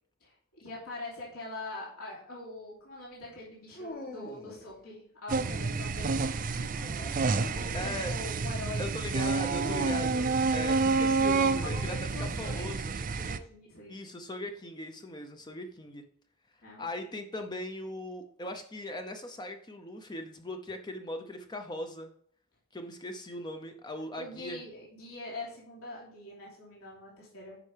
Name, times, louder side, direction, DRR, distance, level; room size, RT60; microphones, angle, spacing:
voice 1, 0.2-6.7 7.0-9.1 11.6-13.9 16.6-16.8 24.1-27.6, left 2 dB, 70° left, -6 dB, 2.9 m, -44 dB
Dog, 3.7-4.7 6.6-8.1 9.6-10.4, left 1 dB, 40° left, 1.2 m, -43 dB
sound 1, 5.3-13.4, right 4 dB, 35° right, 0.4 m, -29 dB
voice 2, 7.7-8.1 8.8-12.9 13.9-16.0 16.8-22.1 22.7-24.6, left 1 dB, 20° left, 6 dB, 0.5 m, -39 dB
9.8 x 5.5 x 3.3 m, 0.64 s
head